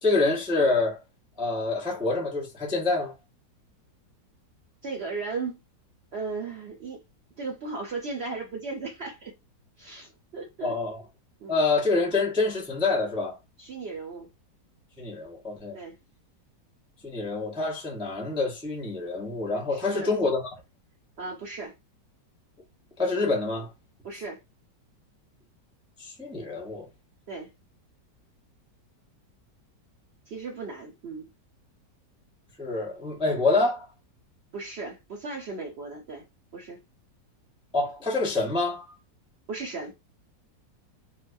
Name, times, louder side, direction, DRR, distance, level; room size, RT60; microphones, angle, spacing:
voice 1, 0.0-1.0 1.4-3.1 10.6-11.0 11.5-13.4 15.0-15.8 17.0-20.4 23.0-23.7 26.0-26.9 32.6-33.9 37.7-39.0, left 3 dB, 10° right, 0.3 m, -26 dB
voice 2, 4.8-5.6 6.1-7.0 7.4-9.3 9.8-10.7 11.4-11.6 13.6-14.3 15.7-16.0 19.7-20.1 21.2-21.7 24.0-24.4 27.3-27.5 30.3-31.3 34.5-36.2 36.5-36.8 39.5-39.9, right 4 dB, 85° right, 0.5 m, -36 dB
3.9 x 2.3 x 2.5 m
omnidirectional pair, 1.9 m